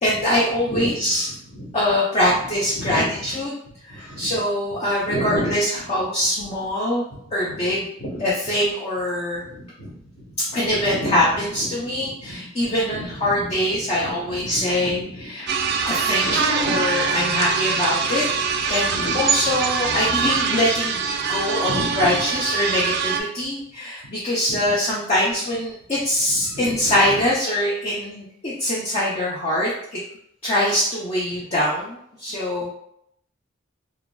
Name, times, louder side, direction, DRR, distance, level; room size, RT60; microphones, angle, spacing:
voice 1, 0.0-1.3 1.7-3.5 3.9-7.0 7.3-7.9 8.2-9.4 10.4-15.5 15.9-18.2 18.7-21.0 21.3-30.0 30.4-32.7, left 1 dB, 30° left, -6 dB, 0.5 m, -23 dB
voice 2, 1.3-1.7 2.3-2.4 2.7-3.1 3.6-4.2 5.1-5.5 8.0-8.1 9.5-10.6 10.8-11.2 11.6-12.3 12.6-13.5 13.8-15.0 16.2-16.4 18.9-19.1 21.7-22.1 24.5-24.6 26.4-27.2, equal, 50° left, -8 dB, 1.0 m, -32 dB
sound 1, 15.5-23.2, right 5 dB, 55° right, 0.3 m, -23 dB
2.9 x 2.5 x 2.2 m, 0.73 s
head